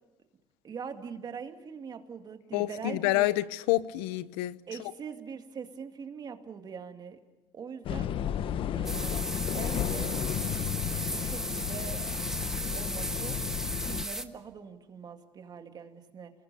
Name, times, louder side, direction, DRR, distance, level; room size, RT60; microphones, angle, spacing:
voice 1, 0.6-3.3 4.7-7.2 7.5-8.1 8.7-10.2 10.9-12.0 12.7-13.5 13.8-16.3, right 6 dB, 40° right, 2.2 m, -42 dB
voice 2, 2.5-4.6, left 17 dB, 85° left, 0.8 m, -28 dB
sound 1, 7.8-14.0, left 10 dB, 55° left, 0.9 m, -33 dB
Shower Water, 8.8-14.2, right 1 dB, 5° right, 1.4 m, -36 dB
28.5 x 21.0 x 6.8 m
supercardioid pair, 100°, 11 cm